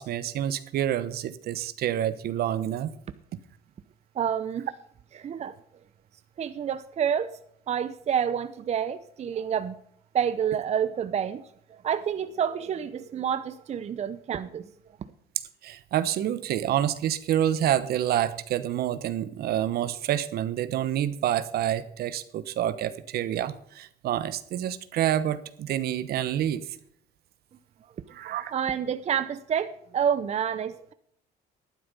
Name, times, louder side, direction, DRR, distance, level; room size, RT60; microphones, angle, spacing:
voice 1, 0.0-2.9 15.6-26.7 28.1-28.5, right 11 dB, 65° right, 14 dB, 1.0 m, -28 dB
voice 2, 4.1-4.7 5.2-5.6 6.4-7.3 7.7-9.7 10.1-14.7 15.0-15.1 28.5-30.9, right 8 dB, 40° right, 12 dB, 0.7 m, -28 dB
11.5 x 9.6 x 5.4 m, 0.68 s
cardioid pair, 110°, 17 cm